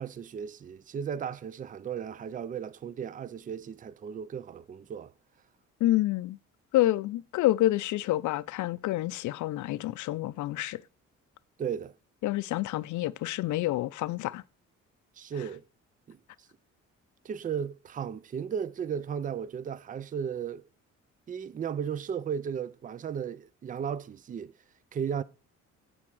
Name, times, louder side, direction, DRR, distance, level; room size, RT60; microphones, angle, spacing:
voice 1, 0.0-5.1 11.6-11.9 15.2-15.6 16.1-16.2 17.2-20.7 21.3-24.5 24.9-25.2, right 7 dB, 30° right, 0.4 m, -35 dB
voice 2, 5.8-6.4 6.7-10.8 12.2-14.4, left 15 dB, 75° left, 0.5 m, -28 dB
8.5 x 3.6 x 6.2 m
cardioid pair, 90°, 30 cm